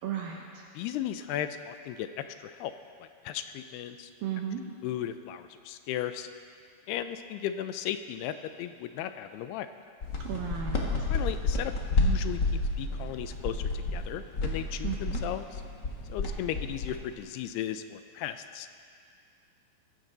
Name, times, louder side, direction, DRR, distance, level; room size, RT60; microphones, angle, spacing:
voice 1, 0.0-0.6 4.2-4.6 10.2-10.9 14.8-15.2, right 9 dB, 70° right, -1 dB, 2.8 m, -34 dB
voice 2, 0.8-2.7 3.0-4.1 4.8-6.3 6.9-9.7 11.1-15.5 16.1-18.7, left 11 dB, 80° left, 10 dB, 2.6 m, -36 dB
sound 1, 10.0-17.1, left 2 dB, 50° left, 1.2 m, -30 dB
21.5 x 15.5 x 4.0 m, 2.2 s
omnidirectional pair, 4.7 m